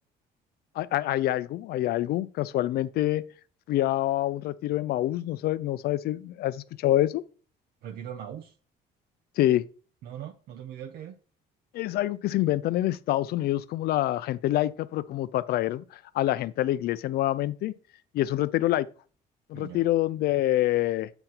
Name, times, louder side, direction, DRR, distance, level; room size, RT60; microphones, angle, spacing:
voice 1, 0.8-3.3 3.7-7.2 9.4-9.6 11.7-15.8 16.1-17.7 18.1-18.9 19.5-21.1, left 14 dB, 70° left, 0.5 m, -26 dB
voice 2, 7.8-8.5 10.0-11.1 19.5-19.8, right 9 dB, 70° right, 0.7 m, -40 dB
7.8 x 4.0 x 4.4 m
cardioid pair, 110°, 17 cm